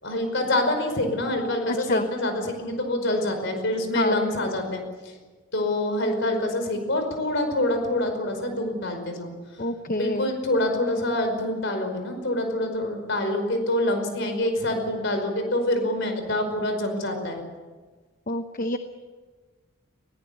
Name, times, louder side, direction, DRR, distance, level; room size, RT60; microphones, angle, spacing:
voice 1, 0.0-5.1 5.5-9.3 10.0-17.4, left 1 dB, 60° left, 6 dB, 5.1 m, -26 dB
voice 2, 1.7-2.1 3.9-4.3 9.6-10.3 18.3-18.8, left 2 dB, 40° left, 8 dB, 0.9 m, -27 dB
21.0 x 18.0 x 8.4 m, 1.4 s
head